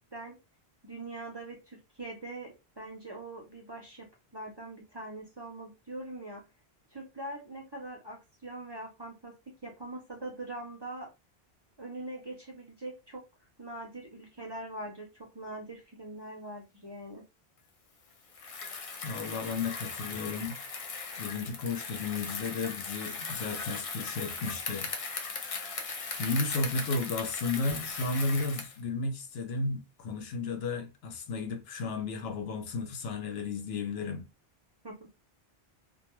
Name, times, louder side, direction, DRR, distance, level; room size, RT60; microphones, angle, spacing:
voice 1, 0.8-6.4 6.9-11.1 11.8-13.2 13.6-17.2 34.8-35.0, right 2 dB, 30° right, 0.5 m, -42 dB
Bicycle, 18.3-28.8, left 4 dB, 55° left, 0.4 m, -38 dB
voice 2, 19.0-20.6 21.2-24.9 26.2-34.3, left 3 dB, 80° left, 0.8 m, -33 dB
2.2 x 2.2 x 2.9 m
omnidirectional pair, 1.0 m